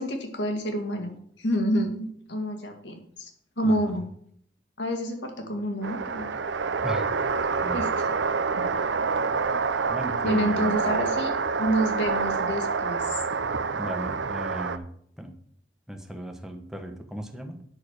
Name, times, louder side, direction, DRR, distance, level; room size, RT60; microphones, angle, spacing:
voice 1, 0.0-3.3 3.6-4.1 4.8-6.3 7.7-8.1 8.6-8.7 9.5-9.7 10.2-11.3 11.6-13.2, equal, 75° left, 4 dB, 2.0 m, -28 dB
voice 2, 3.6-3.9 6.8-7.1 7.6-7.8 9.9-11.0 13.7-15.4 15.9-17.6, right 1 dB, 5° right, 4 dB, 1.0 m, -37 dB
sound 1, 5.8-14.8, right 5 dB, 80° right, 0.6 m, -27 dB
8.8 x 6.3 x 6.5 m, 0.63 s
head